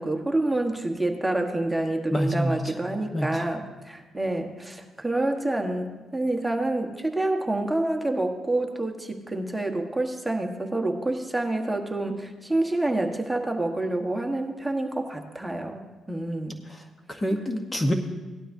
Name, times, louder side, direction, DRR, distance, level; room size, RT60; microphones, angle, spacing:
voice 1, 0.0-15.8 16.1-16.6, right 2 dB, 5° right, 3 dB, 1.2 m, -28 dB
voice 2, 2.1-2.6 3.1-3.3 17.1-17.9, equal, 20° left, 4 dB, 1.0 m, -26 dB
17.5 x 12.0 x 2.7 m, 1.2 s
cardioid pair, 90°, 0 cm